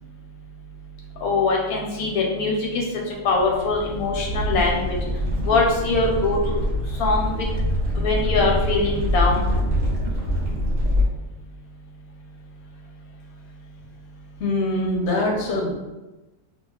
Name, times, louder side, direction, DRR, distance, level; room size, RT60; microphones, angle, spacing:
voice 1, 1.2-2.8 3.2-5.0 5.5-6.6 7.0-7.3 8.0-9.5, left 3 dB, 85° left, -1 dB, 1.1 m, -22 dB
sound 1, 3.3-11.0, equal, 85° right, 1.2 m, -24 dB
voice 2, 14.4-15.7, left 1 dB, 65° left, -1 dB, 0.8 m, -23 dB
2.8 x 2.4 x 2.3 m, 1.1 s
omnidirectional pair, 1.5 m